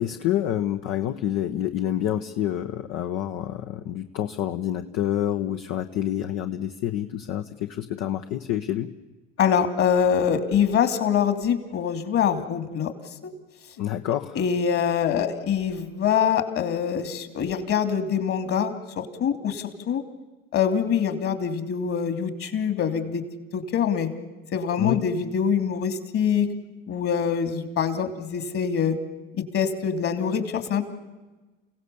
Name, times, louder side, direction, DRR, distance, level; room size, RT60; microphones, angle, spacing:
voice 1, 0.0-8.9 13.8-14.4 24.8-25.0, left 11 dB, 65° left, 6 dB, 1.2 m, -28 dB
voice 2, 9.4-12.9 14.3-20.0 20.5-23.2 23.5-24.1 24.5-26.5 26.9-29.0 29.5-30.8, left 7 dB, 50° left, 8 dB, 3.1 m, -24 dB
30.0 x 17.0 x 7.1 m, 1.2 s
hypercardioid pair, 75°, 29 cm